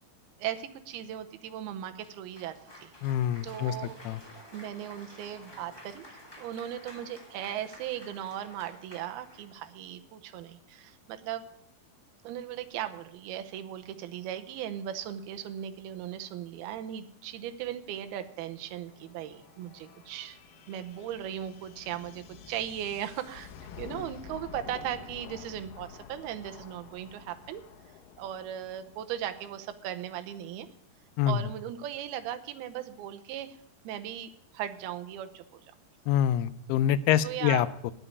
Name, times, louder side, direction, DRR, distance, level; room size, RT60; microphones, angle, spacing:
voice 1, 0.4-2.9 3.4-4.0 4.5-11.4 12.2-20.4 20.7-23.5 23.8-27.6 28.2-30.7 31.2-33.6 33.8-35.7 37.2-37.7, right 11 dB, 85° right, 8 dB, 2.7 m, -37 dB
Cheering / Applause, 2.0-9.7, left 1 dB, 5° left, 2.2 m, -51 dB
voice 2, 3.0-3.8 4.1-4.2 31.2-31.5 36.1-37.9, left 10 dB, 85° left, 15 dB, 2.6 m, -26 dB
sound 1, 17.3-30.8, left 8 dB, 70° left, 2.5 m, -50 dB
9.8 x 8.1 x 9.4 m, 0.72 s
omnidirectional pair, 4.6 m